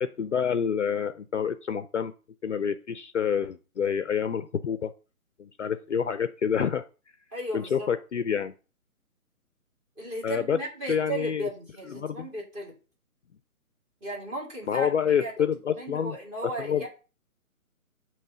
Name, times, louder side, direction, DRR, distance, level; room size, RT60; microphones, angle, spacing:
voice 1, 0.0-2.1 2.4-4.9 5.4-6.8 7.5-8.5 10.2-10.6 10.9-11.5 11.9-12.3 14.7-16.2 16.4-16.9, left 7 dB, 55° left, 12 dB, 0.5 m, -28 dB
voice 2, 7.3-7.9 10.0-12.7 14.0-15.3 15.7-16.9, right 1 dB, 15° right, -1 dB, 1.8 m, -35 dB
6.5 x 3.1 x 5.9 m, 0.34 s
figure-of-eight pair, 150°, 44 cm